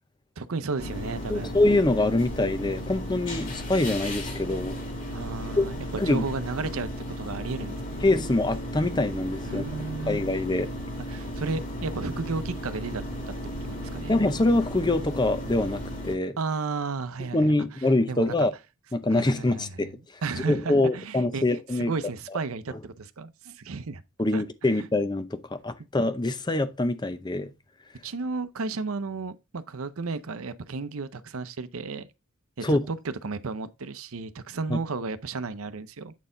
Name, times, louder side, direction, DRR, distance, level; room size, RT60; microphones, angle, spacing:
voice 1, 0.4-1.6 5.1-5.8 6.1-6.9 7.2-8.1 9.5-10.2 11.1-13.3 13.6-14.2 16.4-17.5 18.1-18.5 19.1-19.7 20.2-24.0 24.3-24.4 24.8-24.9 28.0-32.1 32.6-36.1, right 4 dB, 85° right, 0.7 m, -33 dB
sound 1, 0.8-16.2, equal, 40° left, 1.9 m, -35 dB
voice 2, 1.3-4.8 5.6-5.7 6.0-6.2 8.0-9.7 10.1-10.7 14.1-16.4 17.3-18.5 18.9-19.9 20.5-21.9 24.2-27.5 32.6-32.8 34.7-34.8, left 2 dB, 20° left, 0.6 m, -24 dB
8.2 x 4.3 x 3.8 m
head